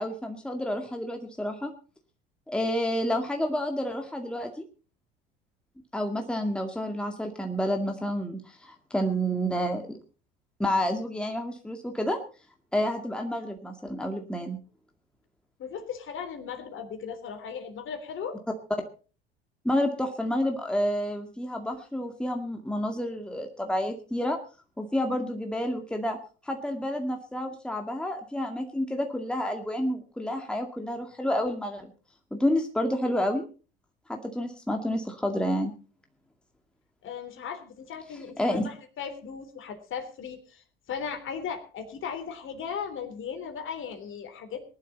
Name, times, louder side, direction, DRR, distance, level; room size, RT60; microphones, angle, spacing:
voice 1, 0.0-1.7 2.5-4.6 5.9-10.0 10.6-12.2 12.7-14.6 19.6-24.4 24.8-26.2 26.4-31.9 32.3-33.4 34.1-35.7 38.4-38.7, equal, 5° left, 3 dB, 2.1 m, -29 dB
voice 2, 15.6-18.4 37.0-44.6, left 7 dB, 40° left, 7 dB, 3.4 m, -37 dB
20.5 x 11.5 x 4.2 m, 0.36 s
figure-of-eight pair, 70°, 31 cm